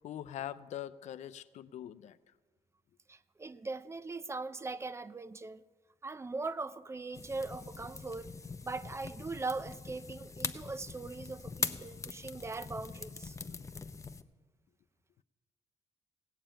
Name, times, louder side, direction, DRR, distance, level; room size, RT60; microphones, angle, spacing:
voice 1, 0.0-2.2, left 11 dB, 80° left, 0.5 m, -42 dB
voice 2, 3.1-5.6 6.0-8.3 8.6-13.4, right 3 dB, 20° right, 0.5 m, -40 dB
sound 1, 7.1-14.2, left 4 dB, 25° left, 0.6 m, -42 dB
17.5 x 7.0 x 8.9 m
cardioid pair, 90°, 12 cm